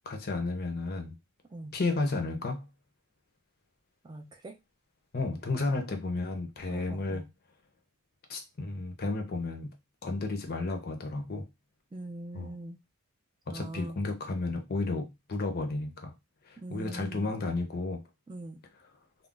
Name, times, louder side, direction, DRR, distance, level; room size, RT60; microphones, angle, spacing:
voice 1, 0.1-1.1 1.7-2.7 5.1-7.2 8.3-9.7 10.0-11.4 12.3-12.5 13.5-16.1 16.5-18.0, left 3 dB, 45° left, 0.6 m, -32 dB
voice 2, 4.0-4.5 6.7-7.3 11.9-12.8 13.5-14.0 16.6-17.3 18.3-18.6, right 2 dB, 20° right, 0.4 m, -42 dB
2.3 x 2.0 x 3.7 m
head